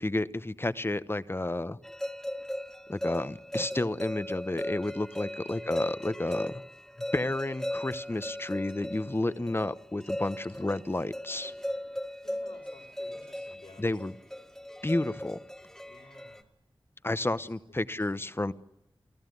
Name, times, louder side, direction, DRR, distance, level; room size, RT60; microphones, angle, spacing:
voice 1, 0.0-1.8 2.9-6.6 7.1-11.5 13.8-14.1 14.8-15.4 17.0-18.5, left 2 dB, 25° left, 14 dB, 0.9 m, -31 dB
sound 1, 1.8-16.4, left 1 dB, 5° left, 2.0 m, -38 dB
voice 2, 12.2-14.0 15.9-16.4 17.2-17.4 17.9-18.3, left 3 dB, 80° left, 2 dB, 4.1 m, -55 dB
28.5 x 14.5 x 9.4 m, 0.89 s
wide cardioid pair, 65°, 9 cm